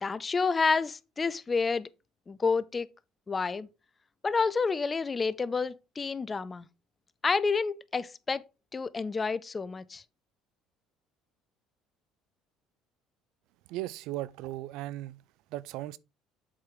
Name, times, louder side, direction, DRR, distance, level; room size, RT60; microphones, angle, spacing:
voice 1, 0.0-1.9 2.3-2.9 3.3-3.7 4.2-6.7 7.2-8.4 8.7-10.0, left 4 dB, 25° left, 0.5 m, -29 dB
voice 2, 13.7-15.2 15.5-16.0, right 15 dB, 75° right, 0.4 m, -37 dB
7.3 x 4.6 x 3.9 m
supercardioid pair, 95°, 0 cm